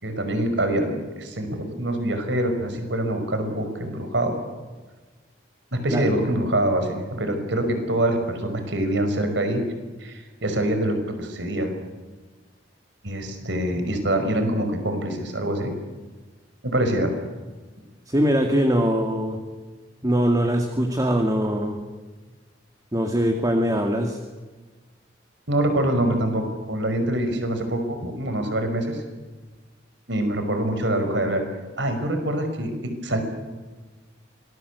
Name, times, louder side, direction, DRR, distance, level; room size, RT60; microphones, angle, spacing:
voice 1, 0.0-4.4 5.7-9.6 10.0-11.7 13.0-15.7 16.6-17.1 25.5-29.0 30.1-31.4 31.8-33.2, right 1 dB, 70° right, 7 dB, 5.4 m, -25 dB
voice 2, 18.1-19.4 20.0-21.8 22.9-24.2, equal, 20° right, 4 dB, 2.3 m, -22 dB
26.5 x 21.0 x 8.4 m, 1.3 s
head